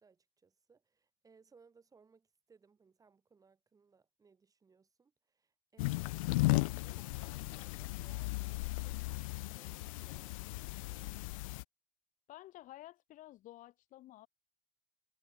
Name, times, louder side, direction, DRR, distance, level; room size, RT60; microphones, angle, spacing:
voice 1, 0.0-11.3, right 5 dB, 20° right, 5.6 m, -66 dB
sound 1, 5.8-11.6, left 22 dB, 80° left, 0.4 m, -36 dB
voice 2, 12.3-14.3, left 15 dB, 50° left, 3.0 m, -52 dB
supercardioid pair, 110°, 17 cm